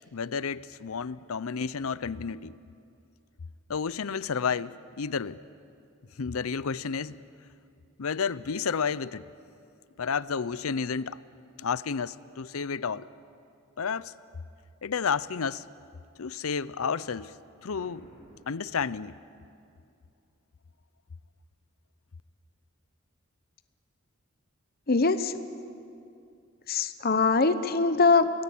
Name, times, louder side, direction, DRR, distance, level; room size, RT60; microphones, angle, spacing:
voice 1, 0.1-2.5 3.7-5.4 6.2-7.2 8.0-9.3 10.0-11.2 11.6-13.1 13.8-14.1 14.8-15.6 16.2-17.3 17.6-18.1 18.5-19.1, left 6 dB, 80° left, 18 dB, 0.6 m, -31 dB
Boom, 17.7-19.5, equal, 35° right, 6.5 m, -54 dB
voice 2, 24.9-25.4 26.7-28.3, left 4 dB, 45° left, 11 dB, 0.9 m, -23 dB
29.5 x 19.5 x 8.6 m, 2.5 s
head